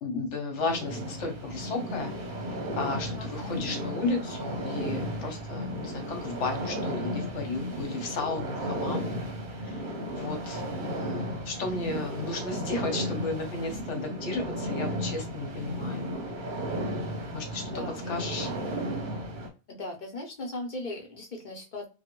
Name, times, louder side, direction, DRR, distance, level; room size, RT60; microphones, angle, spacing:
voice 1, 0.0-2.1 2.7-9.1 9.6-9.8 10.1-16.1 17.3-18.5, left 3 dB, 70° left, 5 dB, 1.1 m, -34 dB
sound 1, 0.6-19.5, equal, 45° right, 0.8 m, -34 dB
voice 2, 19.7-21.9, left 2 dB, 45° left, 0 dB, 0.8 m, -38 dB
3.1 x 2.2 x 2.9 m, 0.34 s
omnidirectional pair, 1.3 m